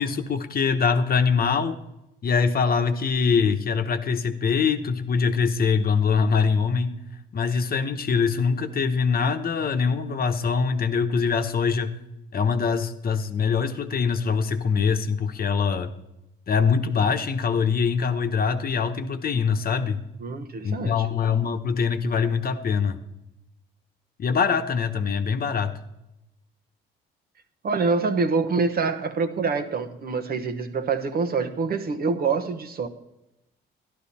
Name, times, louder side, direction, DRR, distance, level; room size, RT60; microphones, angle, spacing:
voice 1, 0.0-1.8 2.2-6.9 7.3-12.0 12.3-15.9 16.5-20.0 20.6-23.0 24.2-25.7, left 5 dB, 50° left, 7 dB, 1.0 m, -23 dB
voice 2, 20.2-21.1 27.6-32.9, right 4 dB, 50° right, 8 dB, 1.2 m, -25 dB
12.0 x 12.0 x 4.2 m, 0.91 s
cardioid pair, 90°, 20 cm